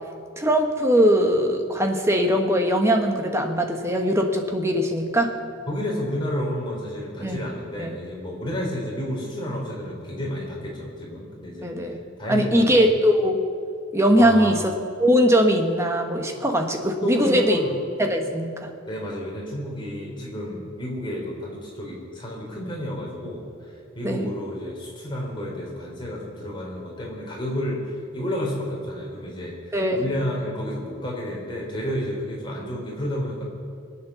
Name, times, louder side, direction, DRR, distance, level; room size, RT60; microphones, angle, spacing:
voice 1, 0.4-5.3 7.2-7.4 7.8-7.9 11.6-12.0 12.3-13.4 13.9-14.6 15.0-17.6 18.0-18.7 24.0-24.3 29.7-30.1, equal, 15° right, 3 dB, 1.2 m, -21 dB
voice 2, 5.7-11.9 12.2-12.8 14.1-14.6 16.3-16.4 17.0-17.7 18.9-33.4, equal, 20° left, -3 dB, 3.8 m, -31 dB
22.0 x 8.8 x 6.9 m, 2.3 s
head